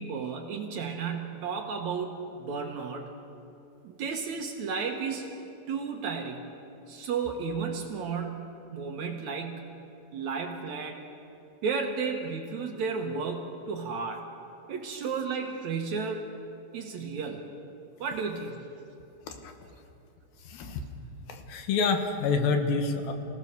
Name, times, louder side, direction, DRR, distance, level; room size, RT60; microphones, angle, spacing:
voice 1, 0.0-3.1 3.8-5.3 5.7-6.5 6.9-9.7 10.1-11.1 11.6-14.3 14.7-16.3 16.7-17.5 18.0-18.6, right 5 dB, 65° right, 3 dB, 2.1 m, -33 dB
voice 2, 20.4-20.8 21.3-23.1, left 4 dB, 80° left, 6 dB, 3.1 m, -28 dB
24.5 x 17.0 x 6.8 m, 2.7 s
omnidirectional pair, 4.2 m